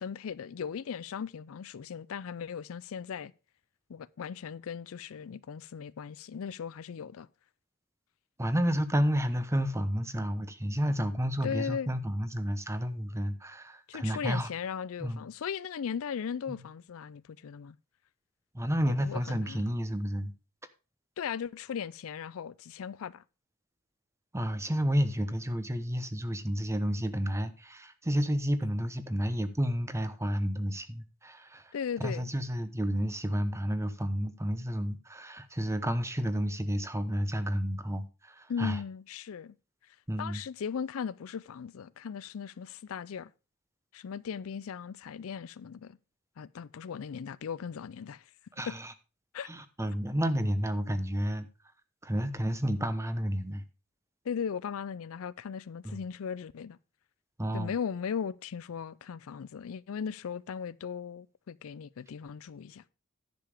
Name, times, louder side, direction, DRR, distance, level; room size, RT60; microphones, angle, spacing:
voice 1, 0.0-3.3 3.9-7.3 11.4-11.9 13.9-17.8 18.9-19.6 21.2-23.2 31.7-32.3 38.5-39.5 40.2-43.3 43.9-46.0 46.4-48.2 48.7-48.8 49.3-49.5 54.2-56.8 57.5-62.8, left 7 dB, 70° left, 0.4 m, -37 dB
voice 2, 8.4-14.5 15.0-15.2 16.5-16.6 18.5-20.3 24.3-31.7 32.0-38.8 40.1-40.4 48.5-48.9 49.4-51.5 52.0-53.6 55.8-56.0 57.4-57.7, equal, 15° right, 0.9 m, -31 dB
10.5 x 6.9 x 4.9 m
head